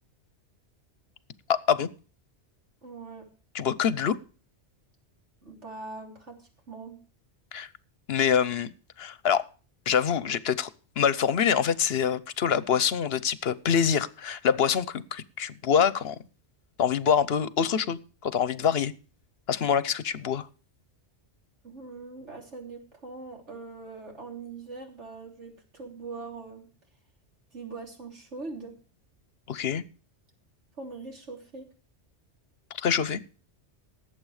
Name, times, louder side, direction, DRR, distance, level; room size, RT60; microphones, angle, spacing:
voice 1, 1.5-1.9 3.5-4.2 7.5-7.7 8.1-8.7 9.0-9.4 9.9-10.7 11.0-16.2 16.8-18.9 19.5-20.5 29.5-29.8 32.8-33.2, left 7 dB, 65° left, 18 dB, 1.0 m, -25 dB
voice 2, 2.8-3.2 5.4-7.0 21.6-26.7 27.5-28.7 30.8-31.7, right 3 dB, 85° right, 2 dB, 3.7 m, -42 dB
18.0 x 8.0 x 4.8 m, 0.37 s
omnidirectional pair, 1.2 m